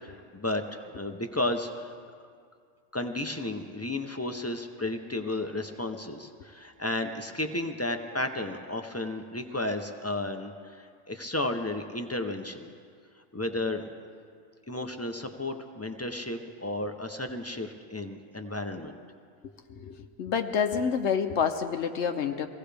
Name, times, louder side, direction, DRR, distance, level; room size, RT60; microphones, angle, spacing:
voice 1, 0.3-1.9 2.9-12.7 13.3-13.9 14.7-19.0, left 1 dB, 25° left, 5 dB, 0.3 m, -33 dB
voice 2, 19.4-22.5, left 7 dB, 65° left, 7 dB, 0.9 m, -28 dB
23.5 x 17.0 x 3.4 m, 2.1 s
omnidirectional pair, 1.4 m